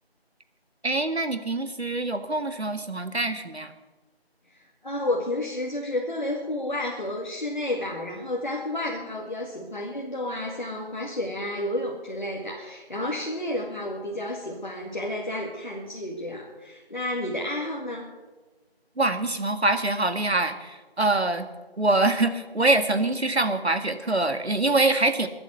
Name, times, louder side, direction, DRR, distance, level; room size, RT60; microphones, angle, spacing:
voice 1, 0.8-3.7 19.0-21.5 21.8-25.3, right 2 dB, 85° right, 9 dB, 1.9 m, -24 dB
voice 2, 4.5-18.1, left 1 dB, 45° left, -2 dB, 2.2 m, -31 dB
22.5 x 8.0 x 7.8 m, 1.3 s
figure-of-eight pair, 170°, 31 cm